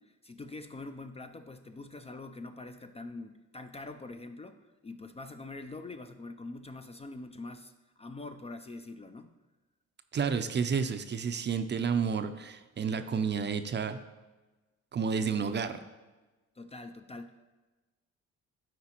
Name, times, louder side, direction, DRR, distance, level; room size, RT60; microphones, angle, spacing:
voice 1, 0.0-9.3 16.6-17.4, left 2 dB, 20° left, 8 dB, 0.4 m, -44 dB
voice 2, 10.1-14.0 14.9-15.8, right 6 dB, 35° right, 9 dB, 0.5 m, -30 dB
12.0 x 4.7 x 2.9 m, 1.2 s
cardioid pair, 90°, 30 cm